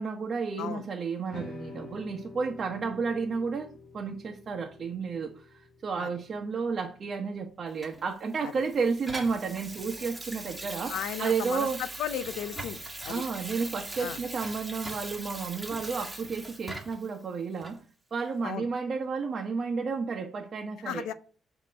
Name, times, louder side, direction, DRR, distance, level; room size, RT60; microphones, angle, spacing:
voice 1, 0.0-11.8 13.1-17.8 18.1-21.0, right 5 dB, 45° right, 0.9 m, -32 dB
sound 1, 1.3-7.6, left 3 dB, 55° left, 1.7 m, -48 dB
Water tap faucet / Sink (filling or washing), 7.8-17.1 17.6-17.8, right 2 dB, 15° right, 1.4 m, -41 dB
voice 2, 10.9-12.8 13.0-13.2 14.0-14.2 18.4-18.7 20.9-21.1, left 10 dB, 90° left, 0.5 m, -35 dB
7.4 x 2.9 x 5.6 m
cardioid pair, 90°, 0 cm